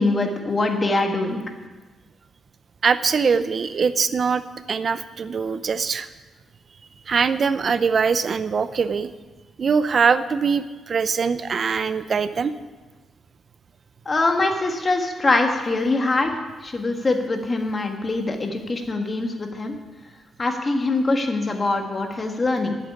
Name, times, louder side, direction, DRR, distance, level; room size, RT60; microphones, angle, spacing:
voice 1, 0.0-1.4 14.0-16.3 16.6-19.8 20.4-22.8, left 2 dB, 25° left, 4 dB, 1.6 m, -23 dB
voice 2, 2.8-4.4 4.7-6.1 7.1-9.1 9.6-12.5, right 5 dB, 40° right, 13 dB, 0.6 m, -22 dB
11.0 x 8.3 x 10.0 m, 1.2 s
wide cardioid pair, 155°, 0 cm